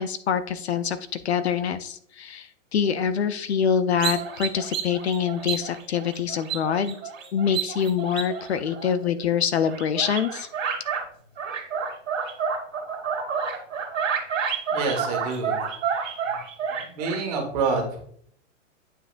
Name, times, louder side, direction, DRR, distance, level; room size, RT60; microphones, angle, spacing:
voice 1, 0.0-7.0 7.3-10.5, left 7 dB, 55° left, 13 dB, 0.5 m, -25 dB
sound 1, 4.0-9.2 9.6-11.0 11.4-17.2, right 6 dB, 85° right, 2.2 m, -30 dB
voice 2, 14.7-15.6 16.3-16.4 16.7-18.0, right 4 dB, 30° right, 1 dB, 1.6 m, -27 dB
9.5 x 5.6 x 2.5 m, 0.63 s
hypercardioid pair, 175°, 38 cm